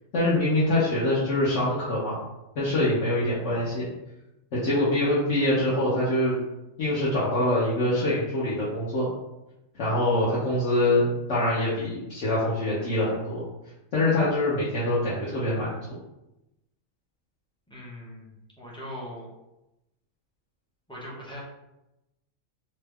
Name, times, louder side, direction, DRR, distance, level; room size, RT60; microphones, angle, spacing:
voice 1, 0.1-2.2 2.6-3.9 4.5-6.3 6.8-9.1 9.7-13.4 13.9-16.0, left 1 dB, 65° left, -9 dB, 1.1 m, -24 dB
voice 2, 17.7-19.3 20.9-21.4, equal, 5° left, -6 dB, 0.4 m, -40 dB
3.1 x 2.2 x 3.4 m, 0.93 s
omnidirectional pair, 1.3 m